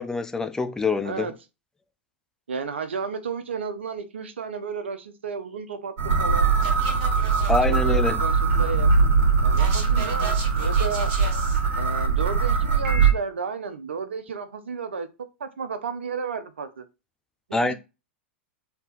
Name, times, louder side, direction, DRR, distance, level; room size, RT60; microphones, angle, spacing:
voice 1, 0.0-1.3 7.5-8.2 17.5-17.7, left 3 dB, 10° left, 0.3 m, -25 dB
voice 2, 2.5-6.5 7.5-8.9 9.4-11.1 11.8-15.1 15.4-16.8 17.5-17.7, right 5 dB, 75° right, 0.5 m, -33 dB
sound 1, 6.0-13.1, right 5 dB, 50° right, 1.1 m, -21 dB
3.3 x 2.8 x 2.4 m
figure-of-eight pair, 100°, 6 cm